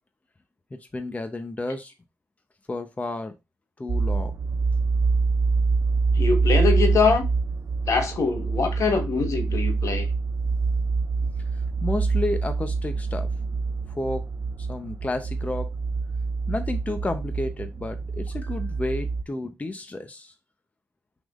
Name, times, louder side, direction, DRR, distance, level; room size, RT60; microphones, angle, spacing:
voice 1, 0.7-1.9 2.7-3.3 3.8-4.3 11.5-13.3 13.9-14.2 14.6-15.7 16.5-20.3, left 2 dB, 25° left, 0.7 m, -31 dB
sound 1, 3.9-19.2, right 4 dB, 50° right, 0.5 m, -25 dB
voice 2, 6.1-7.3 7.8-10.1, left 4 dB, 70° left, 1.3 m, -23 dB
5.9 x 3.6 x 2.4 m
cardioid pair, 70°, 6 cm